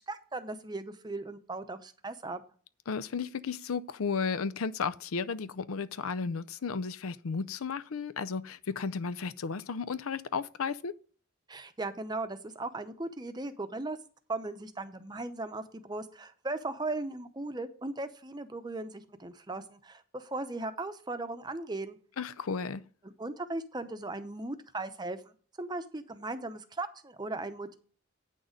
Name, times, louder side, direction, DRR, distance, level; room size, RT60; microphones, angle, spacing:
voice 1, 0.1-2.4 11.5-14.0 14.3-22.0 23.2-25.2 25.6-27.8, right 2 dB, 20° right, 0.7 m, -37 dB
voice 2, 2.9-10.9 22.2-22.8, left 5 dB, 90° left, 0.5 m, -34 dB
9.0 x 6.4 x 5.1 m
head